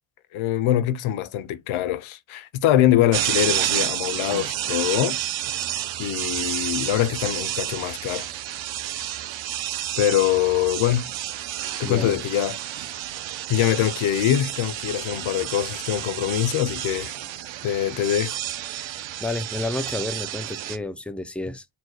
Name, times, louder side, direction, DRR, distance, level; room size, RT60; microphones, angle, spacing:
voice 1, 0.3-5.2 6.0-8.3 10.0-11.1 11.8-12.6 13.5-17.2 17.6-18.4, left 12 dB, 85° left, 0.7 m, -23 dB
sound 1, 3.1-20.8, right 12 dB, 70° right, 0.7 m, -30 dB
voice 2, 11.8-12.2 19.2-21.7, left 2 dB, 5° left, 0.3 m, -30 dB
4.2 x 2.2 x 4.6 m
cardioid pair, 120°, 48 cm